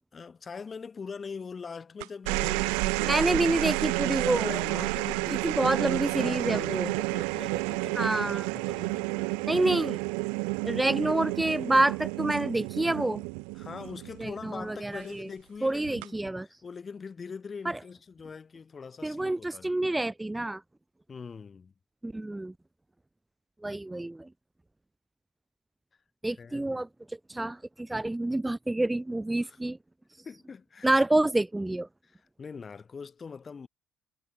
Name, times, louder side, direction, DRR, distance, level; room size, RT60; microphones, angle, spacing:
voice 1, 0.1-3.8 4.4-9.5 13.5-16.2 16.4-19.8 21.1-21.7 26.4-26.7 29.4-29.6 30.2-31.0 32.0-33.7, left 5 dB, 35° left, 7.7 m, -43 dB
sound 1, 2.0-14.6 15.8-16.3, right 40 dB or more, 80° right, 1.0 m, -30 dB
voice 2, 3.1-4.6 5.4-6.9 7.9-8.5 9.5-10.0 10.6-13.2 14.2-15.3 15.6-16.5 17.6-17.8 19.0-20.6 22.0-22.5 23.6-24.3 26.2-29.8 30.8-31.9, right 2 dB, 10° right, 1.7 m, -28 dB
hypercardioid pair, 70°, 0 cm